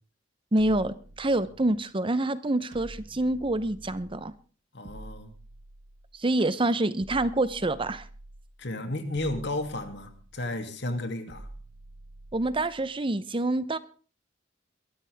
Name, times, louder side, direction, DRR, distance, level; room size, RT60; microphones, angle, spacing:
voice 1, 0.5-4.3 6.1-8.1 12.3-13.8, right 2 dB, 30° right, 15 dB, 0.8 m, -27 dB
sound 1, 0.6-1.9 2.7-4.3 4.8-6.3 7.0-8.6 9.1-10.5 11.3-12.9, right 1 dB, 70° right, 1.5 m, -47 dB
voice 2, 4.7-5.3 8.6-11.5, left 1 dB, 65° left, 7 dB, 2.7 m, -33 dB
22.5 x 13.5 x 3.6 m, 0.38 s
head